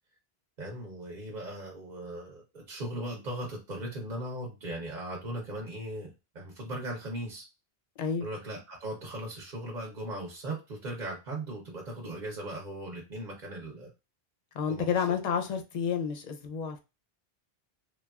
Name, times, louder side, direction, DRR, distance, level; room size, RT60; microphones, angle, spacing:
voice 1, 0.6-7.4 8.2-13.9 14.7-14.9, right 1 dB, 50° right, 0.9 m, -38 dB
voice 2, 14.5-16.8, left 7 dB, 50° left, 0.6 m, -30 dB
3.2 x 2.3 x 2.3 m
omnidirectional pair, 1.0 m